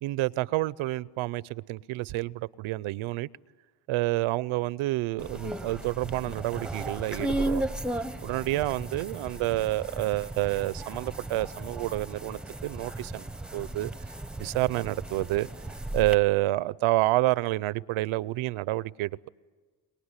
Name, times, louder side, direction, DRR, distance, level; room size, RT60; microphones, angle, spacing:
voice 1, 0.0-3.3 3.9-7.7 8.2-13.9 14.4-15.5 15.9-19.3, right 18 dB, 75° right, 0.7 m, -28 dB
sound 1, 5.2-16.1, right 1 dB, ahead, 0.7 m, -35 dB
22.5 x 22.0 x 9.8 m
cardioid pair, 85°, 50 cm